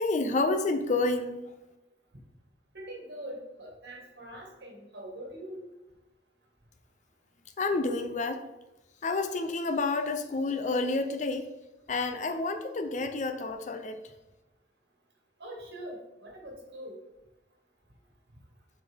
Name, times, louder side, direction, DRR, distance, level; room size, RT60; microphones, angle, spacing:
voice 1, 0.0-1.5 7.6-8.4 9.0-11.5 11.9-14.0, left 3 dB, 45° left, 8 dB, 0.5 m, -29 dB
voice 2, 2.7-5.6 15.4-17.0, right 1 dB, 65° right, -1 dB, 1.9 m, -43 dB
7.6 x 4.0 x 3.5 m, 1.0 s
head